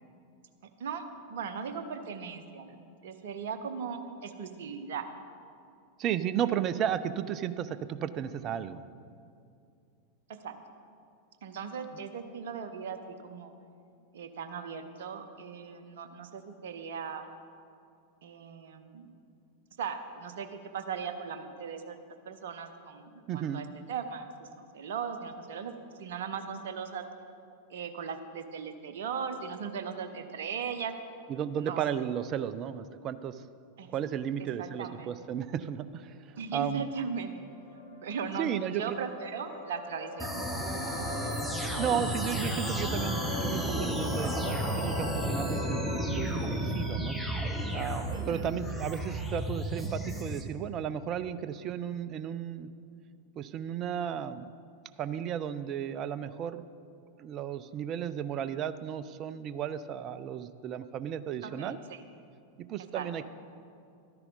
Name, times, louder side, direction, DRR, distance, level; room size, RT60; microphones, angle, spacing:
voice 1, 1.3-2.8 3.0-5.1 10.4-10.6 11.4-13.5 14.1-17.3 18.2-19.2 19.8-22.0 22.3-25.7 26.0-27.0 27.7-30.9 31.6-31.8 33.8-33.9 34.4-35.1 36.4-37.4 38.0-40.5 48.1-48.5 61.4-62.0 62.9-63.3, right 6 dB, 55° right, 8 dB, 0.8 m, -38 dB
voice 2, 6.0-8.8 23.3-23.6 31.3-33.4 33.9-36.9 38.4-39.0 41.8-47.2 47.7-52.7 53.4-54.5 55.0-56.6 57.2-61.8 62.7-63.3, right 9 dB, 35° right, 14 dB, 0.4 m, -34 dB
sound 1, 36.8-46.0, left 1 dB, 90° left, 3.2 m, -42 dB
sound 2, 40.2-50.4, equal, ahead, 1.1 m, -32 dB
12.5 x 9.9 x 4.0 m, 2.4 s
figure-of-eight pair, 90°, 0 cm